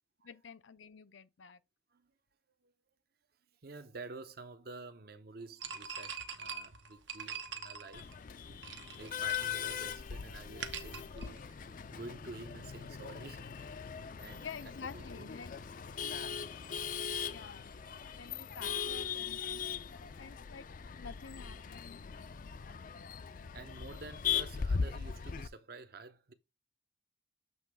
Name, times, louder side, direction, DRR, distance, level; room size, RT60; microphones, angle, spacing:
voice 1, 0.2-1.6 14.4-15.5 17.3-17.8 18.1-20.7 21.0-22.0, left 6 dB, 85° left, 0.7 m, -49 dB
voice 2, 3.6-8.1 9.0-11.5 11.9-13.5 14.2-14.5 14.8-15.3 23.5-26.3, right 3 dB, 55° right, 0.7 m, -49 dB
sound 1, 5.6-11.9, right 6 dB, 75° right, 1.0 m, -45 dB
Male speech man speaking / Laughter / Chatter, 7.9-25.5, left 7 dB, 45° left, 0.4 m, -39 dB
7.9 x 3.1 x 4.9 m
head